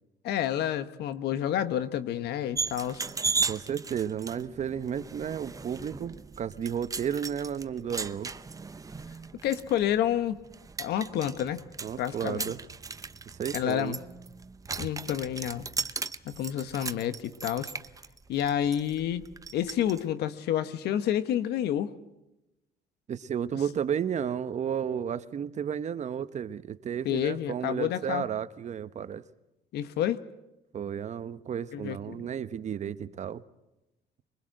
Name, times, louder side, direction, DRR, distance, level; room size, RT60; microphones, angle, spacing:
voice 1, 0.2-3.1 9.4-10.4 10.8-11.6 12.0-12.5 13.5-14.0 14.8-15.7 16.2-17.7 18.3-19.3 19.5-21.9 27.0-28.3 29.7-30.2 31.7-32.3, left 10 dB, 75° left, 12 dB, 1.2 m, -29 dB
sound 1, 2.6-20.0, right 4 dB, 20° right, 0.8 m, -37 dB
voice 2, 3.4-8.3 11.8-12.6 13.4-14.0 23.1-29.2 30.7-33.4, right 8 dB, 45° right, 13 dB, 1.0 m, -33 dB
23.0 x 20.5 x 7.7 m, 0.96 s
cardioid pair, 110°, 17 cm